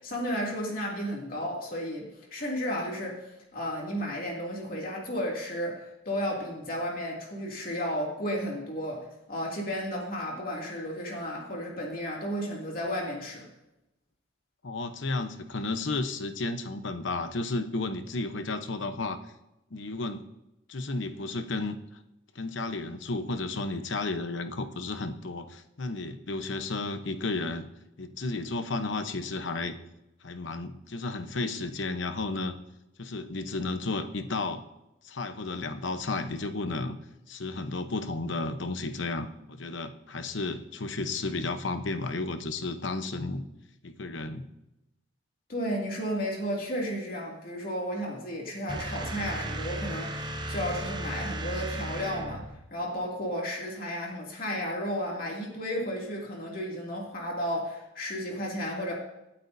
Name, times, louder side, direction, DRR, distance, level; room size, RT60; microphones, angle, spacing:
voice 1, 0.0-13.5 45.5-52.4 52.7-58.9, equal, 45° left, -2 dB, 2.6 m, -33 dB
voice 2, 14.6-19.2 19.7-20.2 20.7-21.8 22.3-27.7 28.0-29.8 30.2-32.6 33.0-34.6 35.0-37.0 37.3-43.4 43.8-44.5, left 3 dB, 75° left, 8 dB, 0.9 m, -33 dB
sound 1, 48.7-52.6, right 1 dB, 20° right, 0.7 m, -35 dB
26.0 x 8.7 x 2.7 m, 0.93 s
head